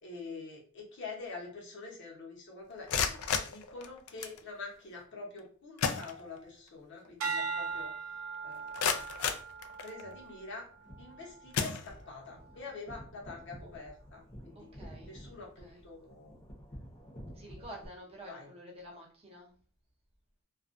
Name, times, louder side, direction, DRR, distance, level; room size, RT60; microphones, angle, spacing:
voice 1, 0.0-7.9 8.4-9.3 9.8-10.7 11.0-14.7 15.1-16.4 18.2-18.5, left 3 dB, 55° left, -1 dB, 0.8 m, -46 dB
sound 1, 2.7-4.4 5.4-5.5 5.8-6.7 7.0-7.1 7.7-7.8 8.3-10.2 10.9-11.1 11.5-12.4, left 6 dB, 85° left, 0.3 m, -34 dB
sound 2, 7.2-11.6 12.2-12.6, right 5 dB, 70° right, 0.6 m, -40 dB
sound 3, 10.7-17.9, equal, 25° left, 0.7 m, -51 dB
voice 2, 14.5-15.1 15.6-15.9 17.3-19.5, equal, 30° right, -1 dB, 0.6 m, -49 dB
2.3 x 2.2 x 2.5 m, 0.42 s
head